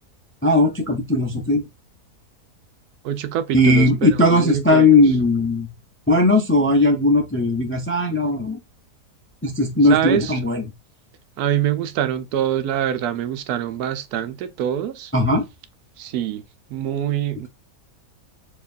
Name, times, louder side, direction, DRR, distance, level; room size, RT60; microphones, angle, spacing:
voice 1, 0.4-1.6 3.5-5.7 6.1-8.6 9.4-10.6 15.1-15.4, left 2 dB, 15° left, 0.4 m, -18 dB
voice 2, 3.0-4.9 9.9-10.3 11.4-15.1 16.0-16.4 16.7-17.5, right 10 dB, 85° right, 1.2 m, -24 dB
4.5 x 3.0 x 2.5 m
omnidirectional pair, 1.6 m